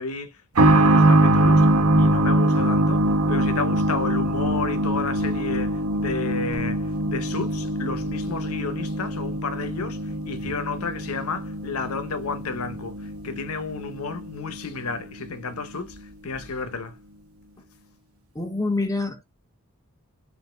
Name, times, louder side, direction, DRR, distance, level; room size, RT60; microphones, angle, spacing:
voice 1, 0.0-1.7 2.0-3.0 3.3-16.0 16.2-17.0, left 4 dB, 90° left, 0.7 m, -32 dB
sound 1, 0.6-15.0 15.3-15.4 16.3-16.4, right 1 dB, 85° right, 0.9 m, -23 dB
voice 2, 18.3-19.2, left 2 dB, 15° left, 0.7 m, -26 dB
4.4 x 2.6 x 3.2 m
head